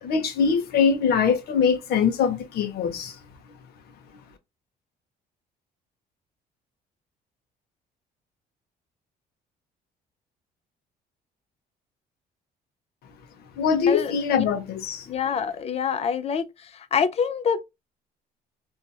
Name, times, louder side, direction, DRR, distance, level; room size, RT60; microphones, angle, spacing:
voice 1, 0.0-3.2 13.6-15.1, left 6 dB, 70° left, 0.8 m, -23 dB
voice 2, 13.9-14.4 15.1-16.4 16.9-17.6, left 7 dB, 40° left, 0.4 m, -25 dB
2.7 x 2.5 x 2.3 m
cardioid pair, 110°, 17 cm